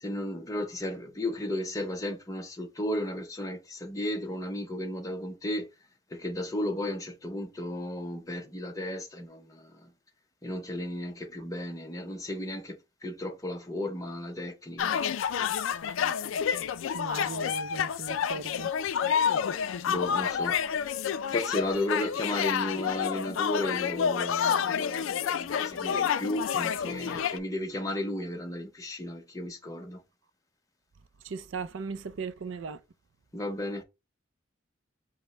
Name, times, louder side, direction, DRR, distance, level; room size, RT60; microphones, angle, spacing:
voice 1, 0.0-5.7 6.1-9.7 10.4-12.8 13.0-14.9 19.9-20.6 21.3-30.0 33.3-33.8, left 1 dB, 15° left, 0.7 m, -34 dB
sound 1, 14.8-27.4, left 7 dB, 90° left, 0.4 m, -29 dB
voice 2, 16.9-18.7 31.2-32.8, right 5 dB, 80° right, 0.4 m, -38 dB
5.1 x 2.1 x 4.3 m
head